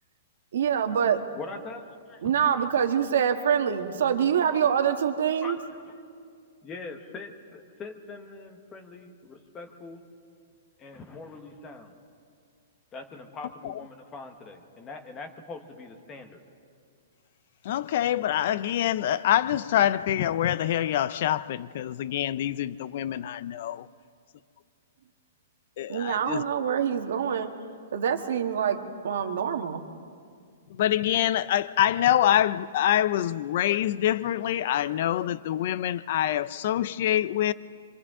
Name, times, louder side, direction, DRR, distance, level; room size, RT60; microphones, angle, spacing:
voice 1, 0.5-1.2 2.2-5.6 25.9-27.5 27.9-29.8, right 8 dB, 65° right, 1.6 m, -25 dB
voice 2, 1.3-2.2 2.6-2.7 5.4-5.9 6.6-10.0 10.8-11.9 12.9-16.4, left 3 dB, 15° left, 1.2 m, -42 dB
voice 3, 17.7-23.2 23.6-23.8 25.8-26.4 30.8-37.5, left 11 dB, 45° left, 0.4 m, -25 dB
29.0 x 24.5 x 3.7 m
hypercardioid pair, 175°, 0 cm